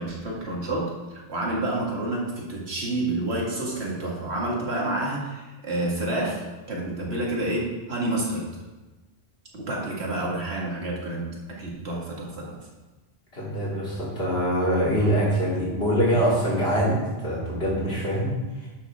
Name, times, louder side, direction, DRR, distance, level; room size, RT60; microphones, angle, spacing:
voice 1, 0.0-8.5 9.5-12.6 15.0-15.1, right 2 dB, 85° right, -3 dB, 2.2 m, -29 dB
voice 2, 13.3-18.7, equal, 75° left, -6 dB, 3.1 m, -24 dB
11.0 x 7.0 x 3.6 m, 1.2 s
omnidirectional pair, 1.1 m